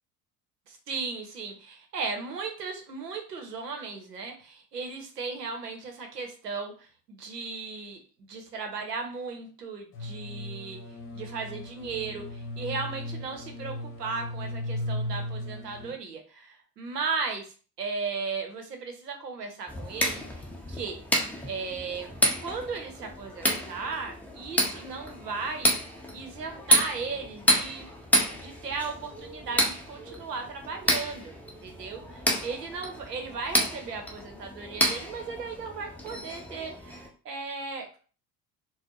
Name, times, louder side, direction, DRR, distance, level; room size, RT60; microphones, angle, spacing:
voice 1, 0.7-10.8 11.1-21.0 21.5-22.1 22.4-25.7 26.1-27.9 28.3-38.0, right 4 dB, 85° right, 4 dB, 0.8 m, -36 dB
sound 1, 9.9-15.9, left 1 dB, 25° left, 1.0 m, -36 dB
sound 2, 19.7-37.1, equal, 5° left, 0.7 m, -30 dB
4.1 x 2.1 x 2.9 m, 0.39 s
figure-of-eight pair, 65°, 47 cm